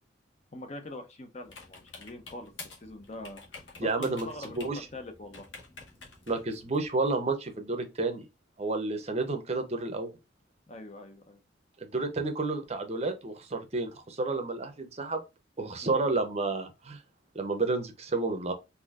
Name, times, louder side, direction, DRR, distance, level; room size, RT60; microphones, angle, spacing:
voice 1, 0.5-2.5 2.8-3.4 3.8-5.5 10.7-11.4 15.8-16.0, left 2 dB, 35° left, 0.7 m, -43 dB
sound 1, 1.4-6.9, left 3 dB, 70° left, 1.2 m, -49 dB
voice 2, 3.8-4.9 6.3-8.2 8.6-10.1 11.8-15.2 15.6-17.0 17.3-18.5, right 3 dB, 35° right, 0.7 m, -31 dB
4.0 x 2.7 x 2.4 m
head